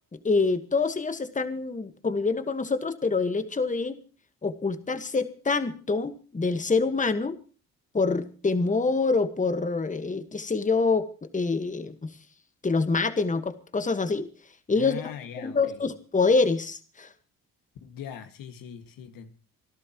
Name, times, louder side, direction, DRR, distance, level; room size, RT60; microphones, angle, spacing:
voice 1, 0.1-3.9 4.4-7.4 7.9-12.1 12.6-14.3 14.7-15.0 15.4-17.1, left 4 dB, 20° left, 10 dB, 1.5 m, -26 dB
voice 2, 14.8-15.8 17.8-19.3, left 8 dB, 75° left, 7 dB, 2.0 m, -41 dB
27.0 x 12.0 x 3.0 m, 0.38 s
supercardioid pair, 65°, 34 cm